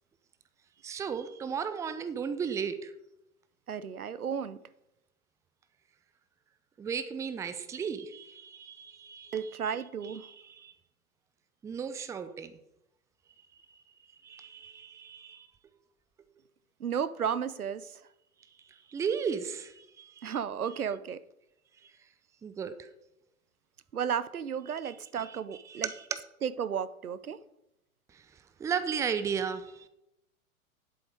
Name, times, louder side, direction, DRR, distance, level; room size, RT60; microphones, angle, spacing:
voice 1, 0.8-2.9 6.8-9.4 10.2-10.7 11.6-12.5 14.2-15.5 18.9-20.3 21.8-21.9 22.4-22.9 24.8-24.9 25.7-25.9 28.1-28.2 28.6-29.9, right 6 dB, 5° right, 0.5 m, -35 dB
voice 2, 3.7-4.6 9.3-10.3 16.8-18.0 20.2-21.2 23.9-25.9 26.4-27.4, right 7 dB, 90° right, 0.7 m, -33 dB
10.5 x 8.0 x 4.8 m
figure-of-eight pair, 105°, 42 cm